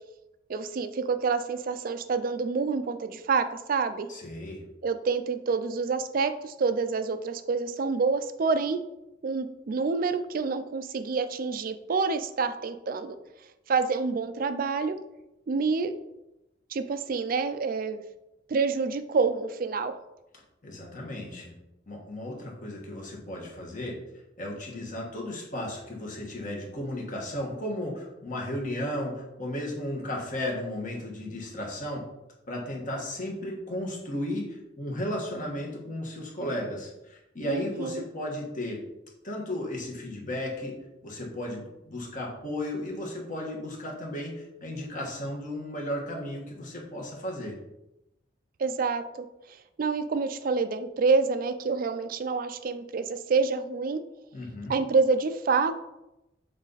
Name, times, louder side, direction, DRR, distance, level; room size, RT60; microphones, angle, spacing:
voice 1, 0.5-4.1 4.8-8.8 9.2-13.2 13.7-15.0 15.5-15.9 16.7-18.0 18.5-19.9 37.5-38.0 48.6-49.0 49.8-54.0 54.7-55.7, right 4 dB, 50° right, 9 dB, 0.4 m, -27 dB
voice 2, 4.1-4.6 20.6-21.5 21.9-24.0 24.4-32.0 32.5-38.8 39.2-40.8 41.0-47.6 54.3-54.7, left 1 dB, 45° left, -1 dB, 1.5 m, -34 dB
6.4 x 3.9 x 4.0 m, 0.91 s
head